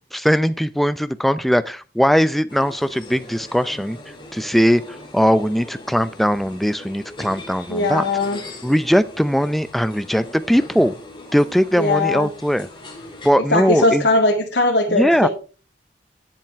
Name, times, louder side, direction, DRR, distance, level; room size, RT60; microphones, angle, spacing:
voice 1, 0.1-8.1 8.6-10.9 11.3-12.7 13.2-14.1 14.9-15.3, equal, ahead, 13 dB, 0.5 m, -19 dB
sound 1, 2.5-13.3, left 2 dB, 25° left, 2.6 m, -40 dB
voice 2, 7.7-8.4 11.8-12.3 13.5-15.3, left 2 dB, 75° left, -1 dB, 2.0 m, -19 dB
10.5 x 7.5 x 4.6 m, 0.35 s
head